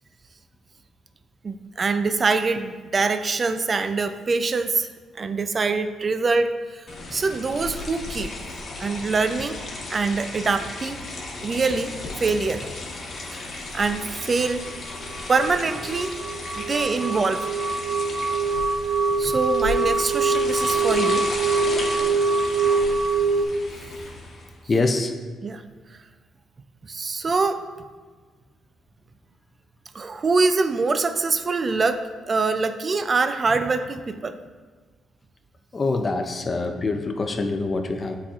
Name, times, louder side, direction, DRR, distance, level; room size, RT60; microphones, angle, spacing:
voice 1, 1.4-4.9 5.2-8.3 8.8-9.6 9.9-11.0 11.4-12.7 13.3-13.4 13.7-14.6 15.3-16.2 16.5-17.5 19.2-21.2 25.4-25.6 26.9-27.7 29.9-34.4, right 4 dB, 35° right, 10 dB, 0.4 m, -24 dB
sound 1, 6.9-24.6, left 2 dB, 50° left, 1.1 m, -35 dB
sound 2, 15.1-23.4, right 4 dB, 75° right, 0.7 m, -24 dB
voice 2, 16.5-17.0 24.7-25.1 35.7-38.2, left 3 dB, 30° left, 5 dB, 0.4 m, -25 dB
9.4 x 4.2 x 2.4 m, 1.5 s
cardioid pair, 90°, 0 cm